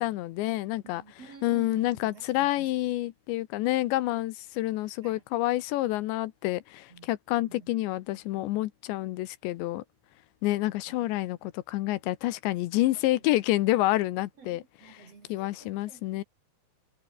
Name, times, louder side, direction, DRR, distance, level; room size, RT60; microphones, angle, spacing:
voice 1, 0.0-1.0 1.4-9.8 10.4-14.6 14.9-16.2, left 17 dB, 80° left, 3.2 m, -28 dB
voice 2, 0.9-2.7 5.0-5.2 6.9-7.1 7.4-7.7 8.1-8.4 11.0-11.2 11.8-12.0 12.9-13.2 14.4-16.2, right 5 dB, 40° right, 3.6 m, -52 dB
omnidirectional pair, 5.2 m